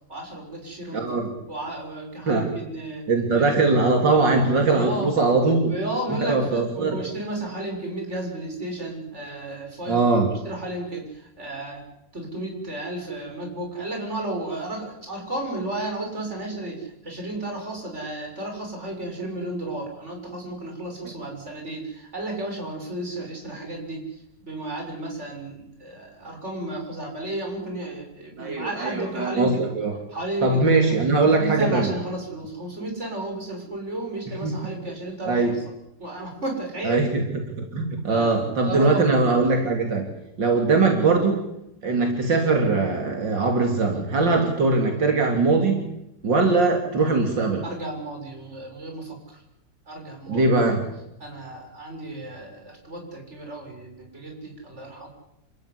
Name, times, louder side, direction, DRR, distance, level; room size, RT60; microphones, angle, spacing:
voice 1, 0.1-1.0 1.5-3.1 3.3-3.6 4.6-5.1 5.7-10.1 10.5-11.8 12.1-24.2 24.5-29.7 30.1-30.6 31.2-35.6 36.0-37.1 38.1-39.3 47.6-49.4 49.9-50.4 51.2-55.1, right 1 dB, 35° right, 1 dB, 7.4 m, -33 dB
voice 2, 0.9-1.3 2.3-2.5 3.1-5.7 6.2-7.0 9.9-10.3 28.4-30.0 30.4-31.9 34.4-34.6 35.3-35.5 36.8-37.3 37.6-40.1 40.4-41.4 41.8-45.8 46.2-47.6 50.3-50.9, right 3 dB, 75° right, 3 dB, 3.7 m, -21 dB
28.5 x 15.0 x 10.0 m, 0.85 s
omnidirectional pair, 2.0 m